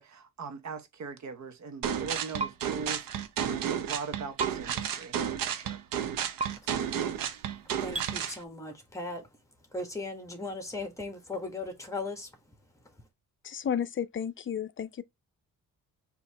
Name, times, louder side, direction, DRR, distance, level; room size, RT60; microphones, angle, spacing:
voice 1, 0.0-3.1 3.4-5.2 5.4-5.8, right 4 dB, 55° right, 1.0 m, -40 dB
sound 1, 1.8-8.4, right 9 dB, 80° right, 0.8 m, -32 dB
sound 2, 2.4-2.5 4.4-4.5 6.4-6.5 7.9-8.1, right 3 dB, 20° right, 0.5 m, -31 dB
voice 2, 7.8-9.2 9.7-12.3, left 2 dB, 10° left, 1.4 m, -37 dB
voice 3, 13.4-15.0, left 8 dB, 35° left, 0.5 m, -32 dB
4.2 x 2.9 x 4.0 m
cardioid pair, 120°, 33 cm